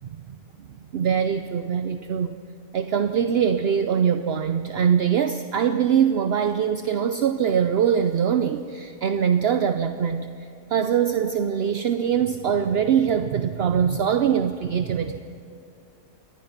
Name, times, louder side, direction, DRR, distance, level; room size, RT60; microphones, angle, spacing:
voice 1, 0.3-0.7 0.9-2.3 2.7-15.2, right 8 dB, 60° right, 9 dB, 0.7 m, -23 dB
23.5 x 19.0 x 5.9 m, 2.6 s
omnidirectional pair, 1.7 m